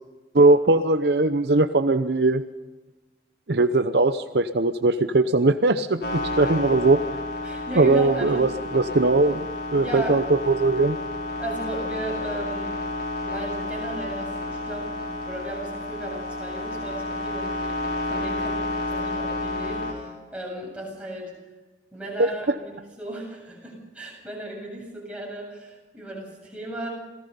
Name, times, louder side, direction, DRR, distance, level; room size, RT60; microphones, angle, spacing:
voice 1, 0.3-2.4 3.5-7.0 7.8-9.4 9.7-11.0 22.2-22.6, right 2 dB, 65° right, 9 dB, 0.8 m, -20 dB
sound 1, 6.0-19.9, left 2 dB, 65° left, 5.4 m, -31 dB
voice 2, 7.4-8.5 9.8-10.2 11.4-12.7 13.2-21.3 21.9-26.9, right 1 dB, 5° right, -3 dB, 7.8 m, -36 dB
27.5 x 18.0 x 5.5 m, 1.2 s
head